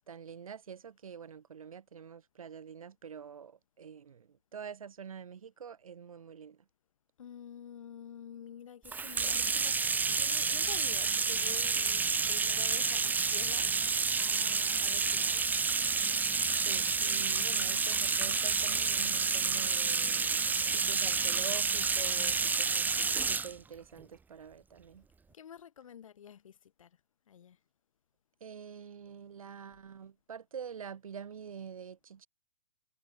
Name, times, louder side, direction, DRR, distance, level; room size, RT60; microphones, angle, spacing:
voice 1, 0.1-6.6 16.6-25.1 28.4-32.3, right 7 dB, 75° right, 5.1 m, -46 dB
voice 2, 7.2-13.7 14.2-15.4 25.3-26.9 27.3-27.6, left 9 dB, 70° left, 6.4 m, -49 dB
Bathtub (filling or washing), 8.9-23.5, right 5 dB, 10° right, 1.6 m, -29 dB
hypercardioid pair, 125°, 18 cm